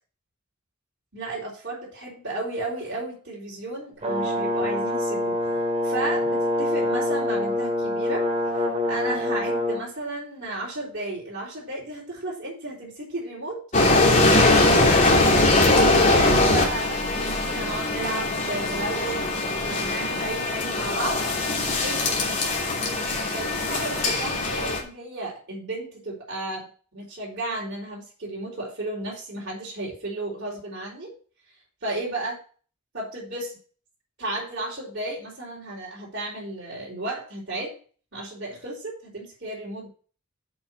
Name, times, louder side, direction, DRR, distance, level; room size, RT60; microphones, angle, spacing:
voice 1, 1.1-19.2 19.6-21.3 21.7-22.6 23.3-31.1 31.8-32.4 32.9-33.6 34.2-37.8 38.1-39.9, right 2 dB, 55° right, -7 dB, 4.2 m, -34 dB
Brass instrument, 4.0-9.8, left 1 dB, 35° right, 2.9 m, -25 dB
sound 1, 13.7-24.8, left 2 dB, 35° left, 3.0 m, -21 dB
7.2 x 6.3 x 6.2 m, 0.40 s
head